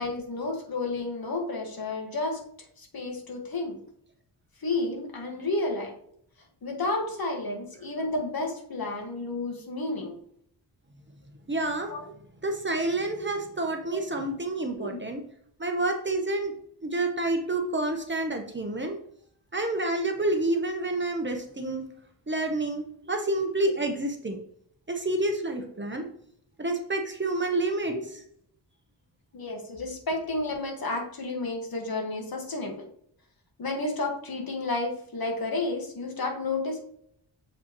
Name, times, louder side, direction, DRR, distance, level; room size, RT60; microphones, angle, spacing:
voice 1, 0.0-2.4 2.8-3.8 4.6-5.9 6.6-10.2 11.9-12.0 13.9-14.0 14.8-15.0 23.6-23.7 27.5-28.0 29.3-32.8 33.6-36.8, left 2 dB, 55° left, 2 dB, 1.7 m, -31 dB
voice 2, 11.5-11.9 12.4-15.2 15.6-16.5 16.8-19.0 19.5-21.8 22.3-24.4 24.9-26.1 26.6-28.0, right 2 dB, 25° right, 4 dB, 0.9 m, -28 dB
7.3 x 5.1 x 3.0 m, 0.67 s
wide cardioid pair, 110°, 43 cm